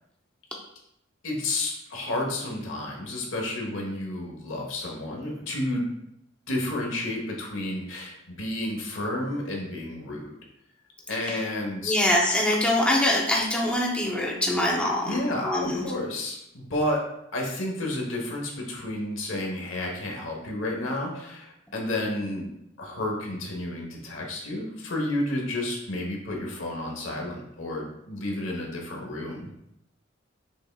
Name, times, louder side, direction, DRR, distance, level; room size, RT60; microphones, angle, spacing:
voice 1, 1.2-5.8 6.5-10.4 11.1-12.0 15.0-17.0 17.3-22.5 22.8-29.6, left 1 dB, 75° left, 0 dB, 1.1 m, -31 dB
voice 2, 11.8-15.8, left 1 dB, 5° left, -3 dB, 0.6 m, -24 dB
6.1 x 3.5 x 2.3 m, 0.79 s
head